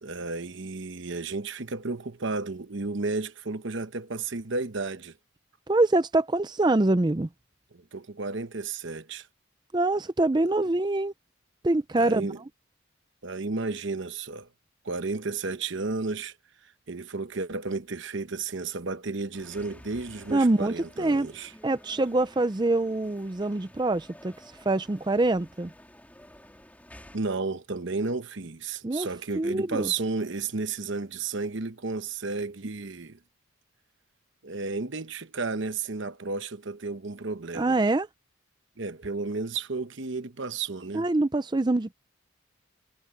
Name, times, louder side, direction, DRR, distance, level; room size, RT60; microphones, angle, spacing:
voice 1, 0.0-5.2 7.7-9.3 12.0-12.4 13.2-14.5 14.8-16.3 16.6-21.5 27.1-33.2 34.4-37.8 38.8-41.1, right 3 dB, 60° right, 1.0 m, -33 dB
voice 2, 5.7-7.3 9.7-11.1 11.6-12.3 20.3-21.3 21.6-25.7 28.8-29.1 29.4-29.9 37.5-38.1 40.9-41.9, right 2 dB, 20° right, 0.5 m, -25 dB
sound 1, 19.3-27.2, left 1 dB, 5° left, 3.5 m, -52 dB
head